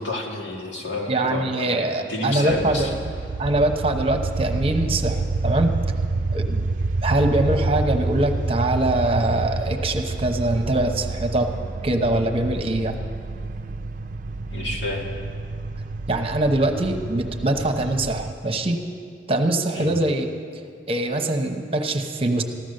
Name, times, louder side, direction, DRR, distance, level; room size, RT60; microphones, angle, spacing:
voice 1, 0.0-2.9 14.5-15.1 19.7-19.9, left 2 dB, 85° left, -1 dB, 2.2 m, -30 dB
voice 2, 1.1-2.9 3.4-5.7 6.3-6.7 7.0-11.5 11.8-13.0 16.1-18.8 19.3-20.3 20.9-22.4, right 1 dB, 30° right, 5 dB, 0.9 m, -23 dB
sound 1, 2.5-18.3, right 3 dB, 45° right, 0.5 m, -28 dB
15.0 x 12.0 x 6.5 m, 2.4 s
head